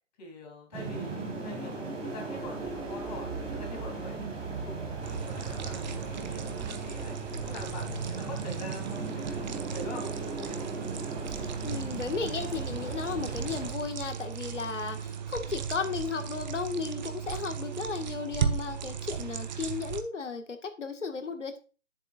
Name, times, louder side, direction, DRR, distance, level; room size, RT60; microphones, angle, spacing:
voice 1, 0.2-4.3 4.7-7.2 7.4-9.4 9.7-10.6, left 1 dB, 35° left, 1 dB, 3.4 m, -44 dB
sound 1, 0.7-13.7, right 3 dB, 15° right, 2.0 m, -37 dB
sound 2, 5.0-20.0, right 7 dB, 35° right, 0.9 m, -36 dB
voice 2, 11.3-21.6, left 5 dB, 70° left, 7 dB, 1.7 m, -35 dB
10.5 x 7.5 x 2.4 m, 0.33 s
figure-of-eight pair, 140°, 37 cm